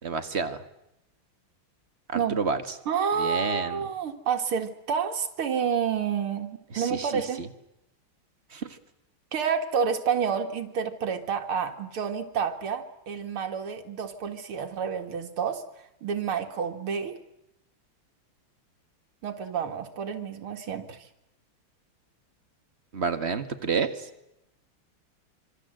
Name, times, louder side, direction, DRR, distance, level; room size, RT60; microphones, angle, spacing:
voice 1, 0.0-0.6 2.1-2.6 3.2-3.8 6.7-7.5 8.5-8.7 22.9-24.1, right 5 dB, 35° right, 9 dB, 1.7 m, -29 dB
voice 2, 2.9-7.4 9.3-15.6 16.0-17.2 19.2-21.0, right 7 dB, 80° right, 6 dB, 2.7 m, -29 dB
26.0 x 24.5 x 7.9 m, 0.85 s
omnidirectional pair, 2.3 m